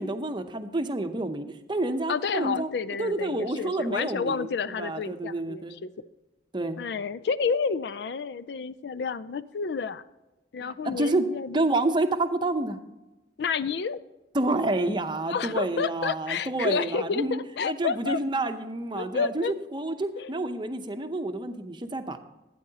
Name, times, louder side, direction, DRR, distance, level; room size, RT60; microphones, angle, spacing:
voice 1, 0.0-2.7 3.0-4.5 4.8-5.7 6.5-6.8 10.6-11.3 11.5-12.8 14.3-19.4 19.7-22.2, right 2 dB, 25° right, 8 dB, 0.7 m, -29 dB
voice 2, 2.1-5.9 6.8-10.0 10.5-11.6 13.4-14.0 15.3-18.2 19.0-19.5 20.2-20.3, left 5 dB, 65° left, 14 dB, 0.4 m, -30 dB
12.5 x 9.2 x 2.8 m, 1.0 s
head